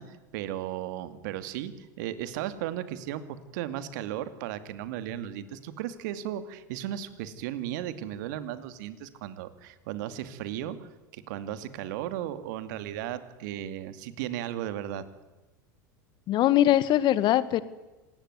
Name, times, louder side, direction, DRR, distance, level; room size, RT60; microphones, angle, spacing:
voice 1, 0.0-15.0, right 11 dB, 65° right, 12 dB, 2.4 m, -35 dB
voice 2, 16.3-17.6, left 13 dB, 45° left, 16 dB, 1.7 m, -22 dB
26.5 x 19.5 x 9.5 m, 1.1 s
hypercardioid pair, 90°, 11 cm